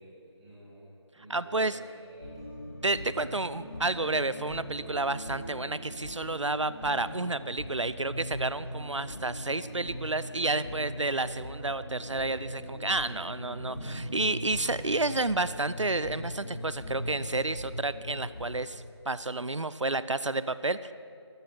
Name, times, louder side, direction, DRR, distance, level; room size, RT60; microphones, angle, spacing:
voice 1, 0.0-2.4, right 1 dB, 5° right, -12 dB, 2.0 m, -51 dB
voice 2, 1.3-1.8 2.8-20.9, right 2 dB, 85° right, 15 dB, 0.6 m, -30 dB
sound 1, 2.2-18.6, equal, 30° left, 2.4 m, -40 dB
13.5 x 12.0 x 7.5 m, 2.5 s
figure-of-eight pair, 165°, 15 cm